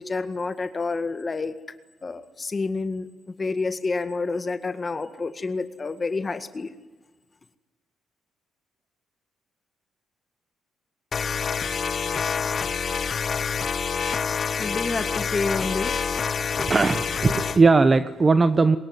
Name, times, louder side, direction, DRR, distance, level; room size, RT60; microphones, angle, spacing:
voice 1, 0.0-1.5 2.0-6.7 14.6-16.3, left 3 dB, 30° left, 10 dB, 1.8 m, -29 dB
sound 1, 11.1-17.6, left 6 dB, 45° left, 1.0 m, -27 dB
voice 2, 16.5-18.8, right 4 dB, 30° right, 11 dB, 1.1 m, -19 dB
23.5 x 21.0 x 9.6 m, 1.2 s
cardioid pair, 90°, 0 cm